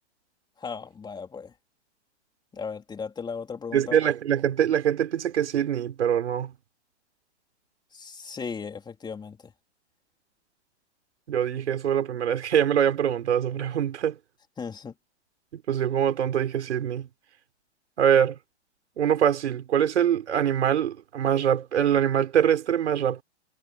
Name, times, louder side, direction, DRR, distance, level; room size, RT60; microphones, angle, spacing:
voice 1, 0.6-1.5 2.5-4.0 7.9-9.4 14.6-14.9, left 5 dB, 10° left, 3.5 m, -36 dB
voice 2, 3.7-6.5 11.3-14.2 15.5-17.1 18.0-18.4 19.0-23.2, right 9 dB, 75° right, 5.0 m, -24 dB
hypercardioid pair, 135°, 35 cm